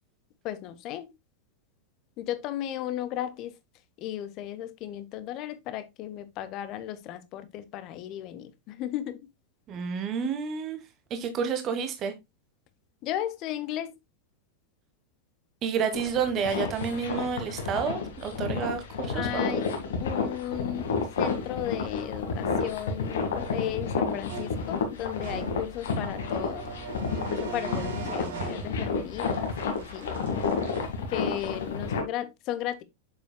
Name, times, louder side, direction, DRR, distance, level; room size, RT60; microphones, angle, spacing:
voice 1, 0.4-1.1 2.2-3.5 4.0-9.3 13.0-14.0 19.1-19.7 20.0-26.7 27.1-29.4 29.6-30.2 31.1-32.8, left 12 dB, 40° left, 1.0 m, -35 dB
voice 2, 9.7-10.8 11.1-12.1 15.6-19.6, right 6 dB, 30° right, 1.3 m, -30 dB
sound 1, 15.9-32.0, left 4 dB, 60° left, 1.8 m, -31 dB
sound 2, 24.3-30.9, right 5 dB, 60° right, 2.0 m, -40 dB
7.7 x 6.8 x 2.2 m
figure-of-eight pair, 90°, 0 cm